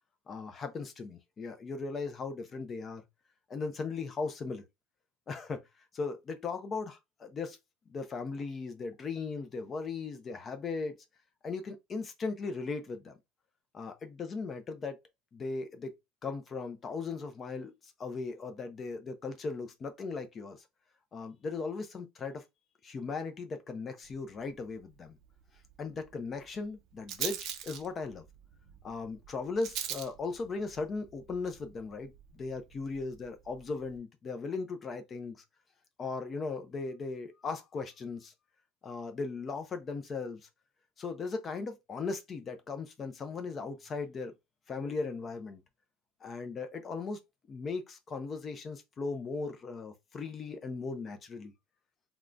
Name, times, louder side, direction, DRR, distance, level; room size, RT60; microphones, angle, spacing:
voice 1, 0.3-3.0 3.5-4.6 5.3-5.6 5.9-7.6 7.9-11.0 11.4-13.2 13.7-15.0 15.3-15.9 16.2-20.6 21.1-22.4 22.8-25.2 25.8-28.3 28.8-35.4 36.0-38.3 38.8-40.5 41.0-44.3 44.7-45.6 46.2-47.2 47.5-51.5, left 4 dB, 20° left, 0.5 m, -38 dB
Rattle, 24.0-34.0, right 9 dB, 45° right, 0.5 m, -44 dB
3.6 x 2.2 x 2.4 m
cardioid pair, 165°, 0 cm